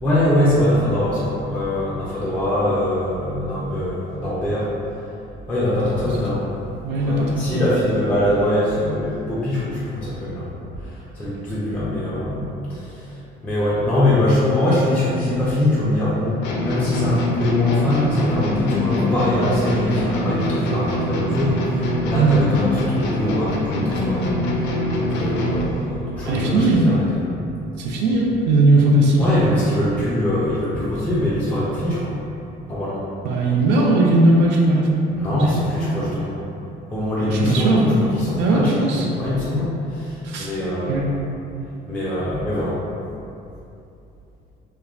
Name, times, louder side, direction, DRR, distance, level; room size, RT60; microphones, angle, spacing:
voice 1, 0.0-4.7 5.5-6.4 7.0-13.2 13.4-27.5 29.2-32.2 32.7-33.0 35.2-36.4 36.9-41.2 41.9-42.8, left 1 dB, 10° left, -9 dB, 0.4 m, -23 dB
voice 2, 6.8-7.6 22.1-22.4 26.2-27.0 27.8-29.2 33.2-35.0 35.3-35.6 37.3-37.9 38.4-39.1 40.2-40.5 40.9-41.1, right 2 dB, 75° right, -1 dB, 0.4 m, -18 dB
sound 1, 16.4-25.8, equal, 80° left, 0.4 m, -23 dB
3.1 x 2.1 x 2.4 m, 2.7 s
cardioid pair, 145°, 18 cm